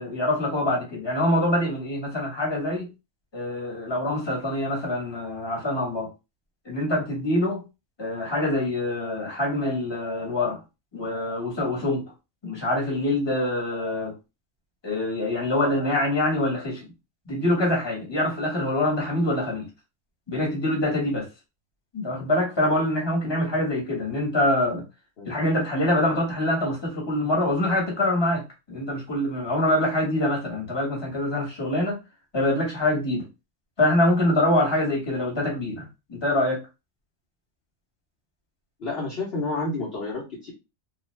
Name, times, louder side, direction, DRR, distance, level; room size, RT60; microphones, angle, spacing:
voice 1, 0.0-2.9 3.3-6.1 6.6-7.6 8.0-10.6 10.9-12.0 12.4-14.1 14.8-16.9 17.3-19.7 20.3-21.3 21.9-24.8 25.2-32.0 32.3-33.2 33.8-36.6, left 1 dB, 20° left, 1.1 m, -25 dB
voice 2, 38.8-40.5, left 2 dB, 50° left, 1.0 m, -30 dB
2.4 x 2.3 x 3.1 m
omnidirectional pair, 1.5 m